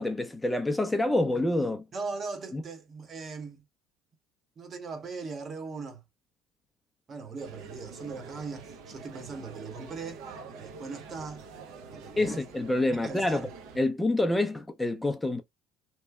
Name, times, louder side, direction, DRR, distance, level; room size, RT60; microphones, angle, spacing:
voice 1, 0.0-1.8 2.5-2.6 12.2-13.5 13.8-15.4, left 2 dB, 10° left, 0.4 m, -27 dB
voice 2, 1.9-3.6 4.6-6.0 7.1-11.4 11.9-12.4 12.9-13.5, right 4 dB, 35° right, 0.7 m, -39 dB
sound 1, 7.4-13.8, right 4 dB, 70° right, 0.7 m, -46 dB
2.9 x 2.1 x 2.2 m
supercardioid pair, 100°, 0 cm